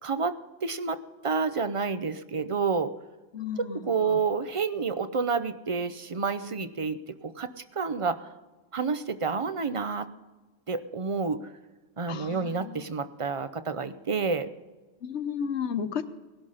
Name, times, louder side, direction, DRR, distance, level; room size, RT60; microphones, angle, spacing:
voice 1, 0.0-2.9 3.6-8.2 8.7-10.1 10.7-11.4 12.0-14.5, right 5 dB, 35° right, 12 dB, 0.6 m, -29 dB
voice 2, 3.3-4.2 12.1-12.8 15.0-16.0, left 7 dB, 75° left, 11 dB, 1.1 m, -33 dB
19.0 x 11.5 x 5.6 m, 1.2 s
omnidirectional pair, 1.2 m